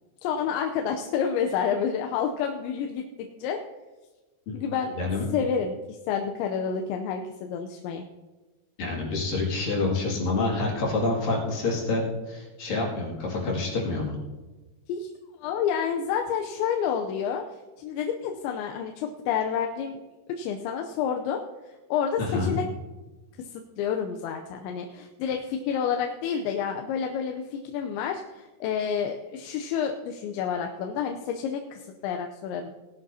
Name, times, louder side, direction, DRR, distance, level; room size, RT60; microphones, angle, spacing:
voice 1, 0.2-3.0 3.4-3.6 4.5-4.9 5.3-8.0 14.9-15.1 15.4-20.0 20.3-22.7 23.4-32.7, left 7 dB, 85° left, 3 dB, 3.0 m, -29 dB
voice 2, 5.0-5.3 8.8-14.2 22.2-22.6, left 3 dB, 55° left, -3 dB, 3.8 m, -27 dB
19.0 x 11.5 x 2.8 m, 1.2 s
omnidirectional pair, 5.1 m